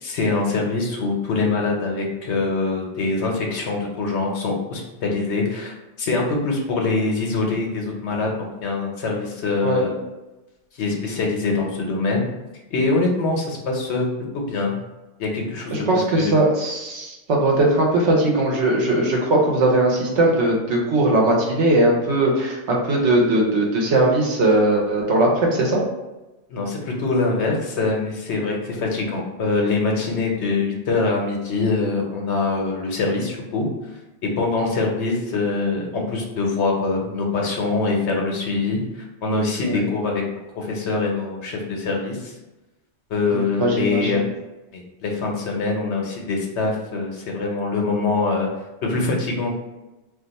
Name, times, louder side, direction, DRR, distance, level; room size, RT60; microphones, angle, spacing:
voice 1, 0.0-8.3 8.6-10.0 10.7-12.3 12.7-14.1 14.3-14.8 15.2-15.7 16.2-16.4 26.5-33.7 34.2-40.2 40.6-42.4 43.1-44.2 44.7-48.5 48.8-49.6, left 3 dB, 70° left, 0 dB, 1.0 m, -24 dB
voice 2, 15.7-25.8 39.7-39.8 43.3-44.2, right 2 dB, 80° right, -1 dB, 1.1 m, -19 dB
2.5 x 2.4 x 3.9 m, 1.0 s
omnidirectional pair, 1.2 m